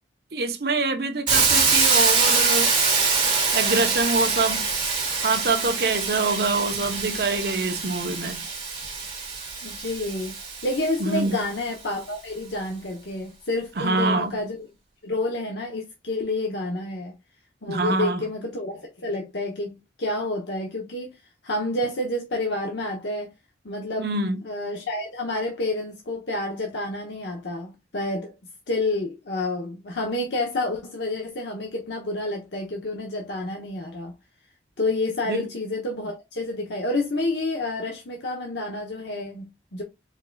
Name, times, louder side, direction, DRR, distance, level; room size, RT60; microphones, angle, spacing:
voice 1, 0.3-2.7 3.5-4.7 5.2-8.4 11.0-11.4 13.8-14.4 17.7-18.2 24.0-24.4 35.3-35.4, right 3 dB, 55° right, 0.7 m, -25 dB
Hiss, 1.3-11.2, right 4 dB, 25° right, 1.9 m, -24 dB
voice 2, 9.6-14.6 15.0-17.1 17.6-21.1 21.4-23.3 23.6-24.1 24.4-28.3 28.7-34.1 34.8-39.8, left 2 dB, 70° left, 0.8 m, -29 dB
4.7 x 3.7 x 2.2 m
head